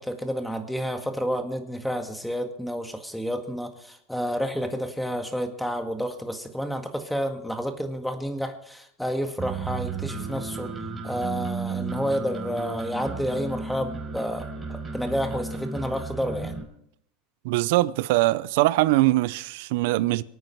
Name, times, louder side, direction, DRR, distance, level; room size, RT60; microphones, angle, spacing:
voice 1, 0.0-10.7 11.0-14.4 14.7-16.5, equal, ahead, 1.8 m, -30 dB
sound 1, 9.4-16.6, right 4 dB, 20° right, 4.1 m, -34 dB
voice 2, 17.4-20.2, right 18 dB, 75° right, 0.6 m, -22 dB
24.5 x 9.2 x 4.6 m
supercardioid pair, 110°, 0 cm